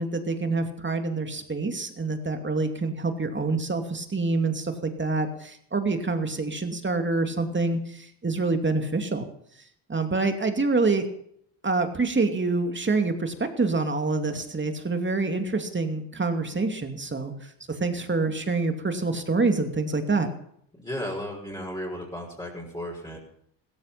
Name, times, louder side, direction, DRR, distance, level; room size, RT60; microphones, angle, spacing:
voice 1, 0.0-9.3 9.9-11.0 11.6-20.3, right 3 dB, 20° right, 6 dB, 2.6 m, -26 dB
voice 2, 20.7-23.2, equal, 10° left, -4 dB, 6.0 m, -34 dB
15.5 x 14.0 x 5.9 m, 0.69 s
supercardioid pair, 70°, 49 cm